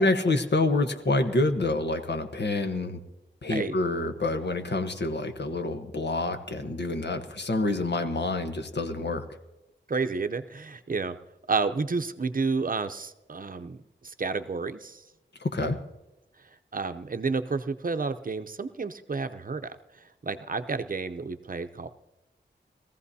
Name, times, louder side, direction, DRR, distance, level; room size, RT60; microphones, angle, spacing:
voice 1, 0.0-3.0 3.4-9.2 15.4-15.8, left 2 dB, 65° left, 7 dB, 1.2 m, -27 dB
voice 2, 9.9-11.2 11.5-15.0 16.7-21.9, right 4 dB, 45° right, 9 dB, 0.7 m, -31 dB
21.5 x 15.0 x 2.8 m, 1.0 s
wide cardioid pair, 60°, 19 cm